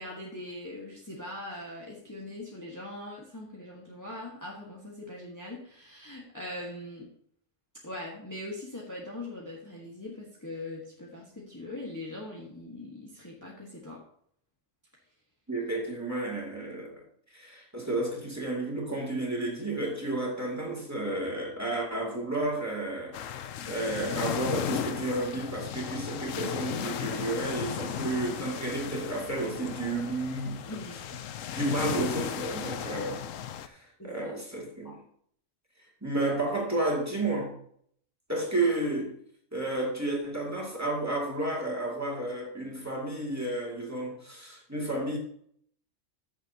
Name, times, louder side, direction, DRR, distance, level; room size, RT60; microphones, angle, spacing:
voice 1, 0.0-7.1 7.8-14.0 30.7-31.0 34.0-34.3 34.8-34.9, left 1 dB, 15° left, -3 dB, 1.5 m, -41 dB
voice 2, 15.5-16.9 17.3-30.6 31.5-33.2 33.6-35.0 36.0-37.5 38.3-39.1 39.5-45.2, right 2 dB, 10° right, -2 dB, 2.4 m, -32 dB
sound 1, 23.1-33.7, left 9 dB, 80° left, 1.0 m, -35 dB
14.0 x 7.2 x 2.9 m, 0.64 s
omnidirectional pair, 1.3 m